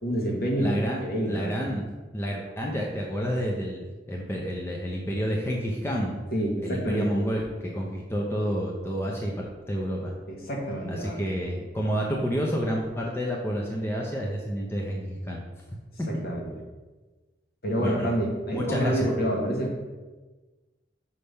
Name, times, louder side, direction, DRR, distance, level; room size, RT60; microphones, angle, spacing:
voice 1, 0.0-1.6 6.3-7.2 10.3-11.3 16.1-16.5 17.6-19.7, right 1 dB, 55° left, -2 dB, 1.4 m, -28 dB
voice 2, 0.6-1.9 2.1-6.2 6.6-10.1 10.9-15.4 17.8-18.1 18.5-19.1, equal, 15° left, -2 dB, 0.6 m, -29 dB
5.7 x 3.4 x 5.4 m, 1.3 s
head